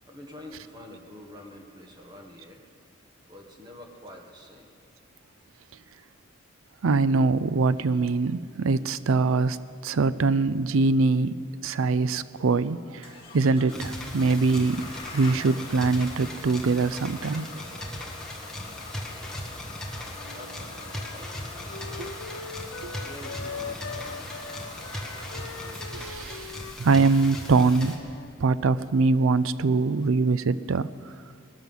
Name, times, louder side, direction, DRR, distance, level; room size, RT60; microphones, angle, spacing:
voice 1, 0.0-2.6 3.3-4.7 20.3-22.1 22.9-24.5, left 1 dB, 20° right, 1 dB, 1.6 m, -47 dB
voice 2, 6.8-9.6 9.8-13.1 13.3-14.8 15.1-17.5 22.0-22.1 22.8-22.9 24.9-26.5 26.8-27.9 28.4-30.9, right 3 dB, 75° right, 16 dB, 0.4 m, -23 dB
Bus / Engine starting, 13.0-29.2, left 2 dB, 25° left, 2.7 m, -45 dB
sound 1, 13.7-28.0, left 1 dB, 5° left, 1.4 m, -38 dB
Wind instrument woodwind instrument, 20.2-28.3, left 5 dB, 70° left, 0.7 m, -42 dB
19.5 x 13.5 x 5.6 m, 2.3 s
head